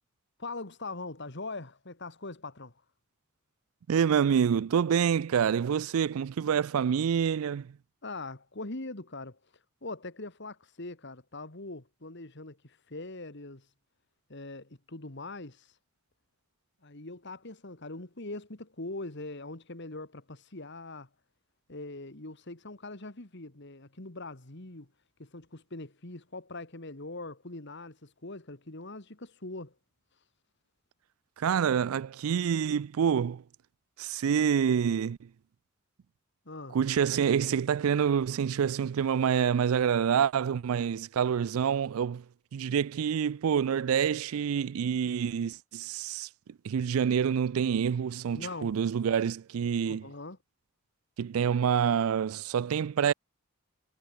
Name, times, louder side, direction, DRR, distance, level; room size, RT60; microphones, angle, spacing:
voice 1, 0.4-2.7 8.0-9.4 9.8-13.7 14.3-15.7 16.8-21.1 21.7-24.9 25.2-29.7 36.5-36.8 48.3-48.7 49.9-50.4, left 2 dB, 55° left, 2.1 m, -42 dB
voice 2, 3.9-7.7 31.4-33.4 34.0-35.3 36.7-42.2 42.5-46.3 46.6-50.1 51.2-53.1, right 7 dB, 80° right, 0.4 m, -27 dB
head